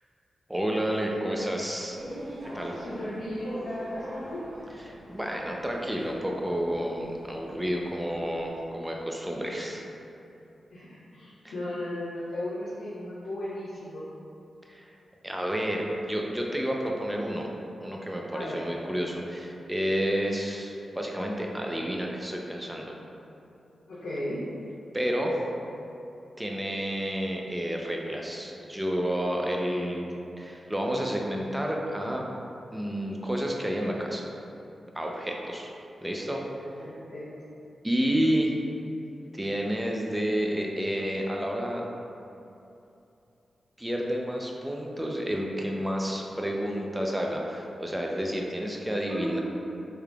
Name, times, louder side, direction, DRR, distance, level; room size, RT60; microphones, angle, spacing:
voice 1, 0.5-2.0 2.5-2.8 4.8-9.9 11.4-11.5 14.7-15.0 15.2-17.5 17.8-22.9 24.9-25.4 26.4-30.0 30.4-32.3 32.7-34.3 34.9-35.7 36.0-36.4 37.8-38.6 39.3-41.9 43.8-49.4, equal, 10° right, -1 dB, 0.6 m, -30 dB
sound 1, 1.9-8.5, equal, 85° right, 1.3 m, -42 dB
voice 2, 2.7-4.4 10.7-14.1 18.3-18.6 23.9-24.5 35.4-35.5 36.8-37.3 49.1-49.4, left 1 dB, 85° left, -12 dB, 1.0 m, -35 dB
4.8 x 3.1 x 2.4 m, 2.8 s
supercardioid pair, 40°, 0 cm